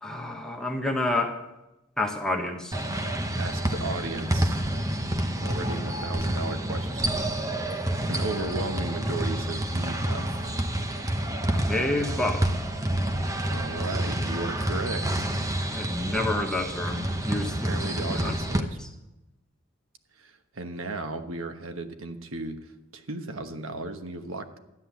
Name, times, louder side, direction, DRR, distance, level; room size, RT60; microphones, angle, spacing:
voice 1, 0.0-1.4 2.0-2.8 11.5-12.5 15.7-17.9 18.2-18.4 18.8-18.9, left 2 dB, 5° left, 1 dB, 1.1 m, -29 dB
sound 1, 2.7-18.6, right 1 dB, 15° right, 0.9 m, -28 dB
voice 2, 3.4-4.6 5.4-7.2 8.1-10.3 13.4-15.3 17.7-18.8 20.2-24.6, right 2 dB, 85° right, 7 dB, 1.2 m, -35 dB
13.0 x 9.9 x 7.1 m, 0.98 s
head